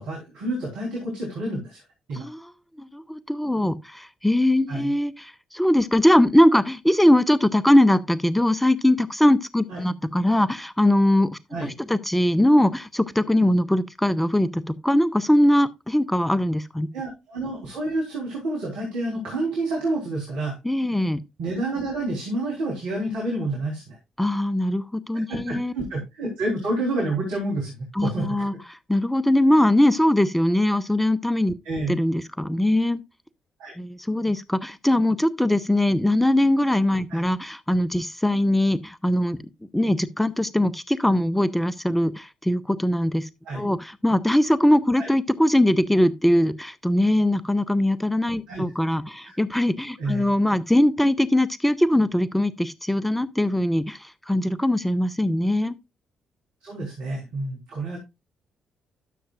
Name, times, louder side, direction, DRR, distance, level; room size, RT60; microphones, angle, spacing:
voice 1, 0.0-1.8 2.1-2.3 4.7-4.9 9.7-9.8 11.5-11.7 16.9-20.6 21.4-24.0 25.3-28.5 31.7-31.9 33.6-33.8 37.1-37.2 43.5-43.6 45.0-45.1 48.5-48.6 49.2-49.4 50.0-50.3 56.6-58.0, right 2 dB, 70° right, 3.4 m, -29 dB
voice 2, 2.1-2.5 2.8-16.9 20.6-21.2 24.2-25.7 28.0-28.5 28.9-31.5 31.9-33.0 33.8-39.4 39.7-43.3 43.5-54.0 54.3-55.7, left 1 dB, 5° left, 0.8 m, -21 dB
12.5 x 7.3 x 2.4 m
figure-of-eight pair, 40°, 2 cm